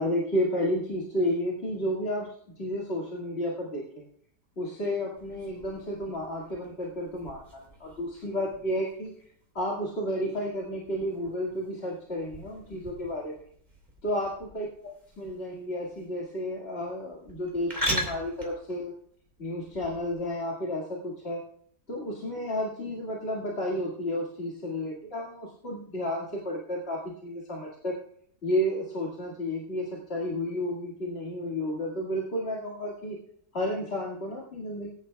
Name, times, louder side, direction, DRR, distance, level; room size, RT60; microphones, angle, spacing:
voice 1, 0.0-4.0 4.6-9.1 9.5-13.3 14.0-14.7 15.2-18.9 19.4-21.4 21.9-28.0 28.4-33.2 33.5-34.9, left 1 dB, 40° left, -4 dB, 2.2 m, -32 dB
sound 1, 5.2-20.2, equal, 25° right, 2.8 m, -40 dB
21.0 x 10.5 x 2.3 m, 0.63 s
omnidirectional pair, 1.7 m